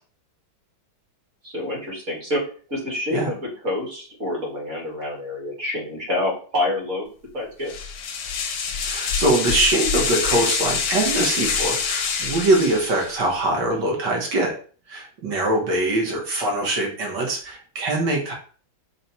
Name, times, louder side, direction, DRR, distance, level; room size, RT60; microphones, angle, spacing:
voice 1, 1.4-2.4 2.7-7.1 7.3-7.7, left 1 dB, 45° right, -2 dB, 1.5 m, -27 dB
sound 1, 7.7-13.3, left 6 dB, 70° left, 0.9 m, -25 dB
voice 2, 8.8-14.5 14.9-18.3, right 2 dB, 70° right, -1 dB, 1.6 m, -23 dB
4.0 x 2.1 x 4.1 m, 0.41 s
omnidirectional pair, 2.1 m